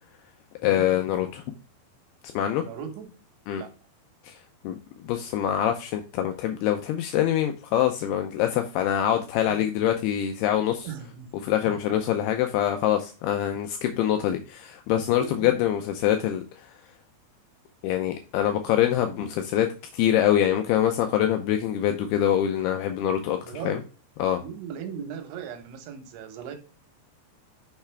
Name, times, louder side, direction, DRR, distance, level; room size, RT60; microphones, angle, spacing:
voice 1, 0.6-1.4 2.3-2.6 3.5-3.6 4.2-4.4 4.6-4.8 5.1-10.9 11.4-16.4 17.8-23.8 24.2-24.4, left 11 dB, 85° left, 6 dB, 2.3 m, -24 dB
voice 2, 2.6-3.1 3.5-3.7 9.4-9.9 10.8-11.3 15.2-15.6 23.4-23.9 24.4-26.6, right 8 dB, 90° right, 7 dB, 3.5 m, -38 dB
6.6 x 5.7 x 3.4 m, 0.35 s
omnidirectional pair, 5.2 m